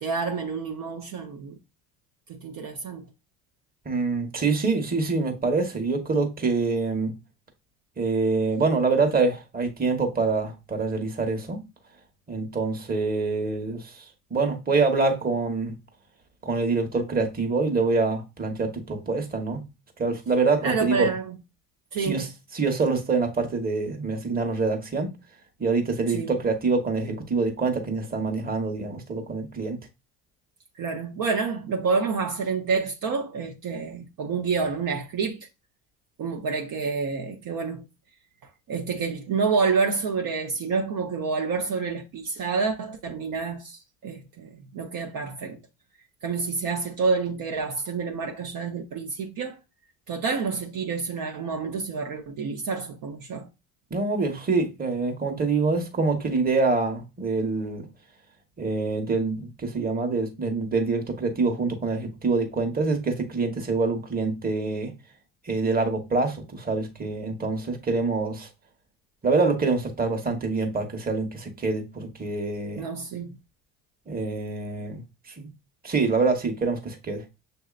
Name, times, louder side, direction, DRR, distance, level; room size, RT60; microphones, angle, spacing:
voice 1, 0.0-1.6 2.3-3.0 20.6-21.4 21.9-22.2 26.1-26.3 30.8-35.5 36.2-37.8 38.7-45.6 46.2-49.6 50.1-53.5 72.8-73.3, right 4 dB, 55° right, 0.9 m, -28 dB
voice 2, 3.8-7.2 8.0-11.6 12.3-14.0 14.3-15.7 16.4-19.6 20.0-21.1 22.0-22.3 22.5-25.1 25.6-29.8 53.9-57.9 58.6-64.9 65.4-68.5 69.2-72.8 74.1-75.0 75.4-75.5 75.8-77.2, right 3 dB, 20° right, 1.3 m, -25 dB
6.5 x 2.8 x 2.4 m
hypercardioid pair, 75°, 40 cm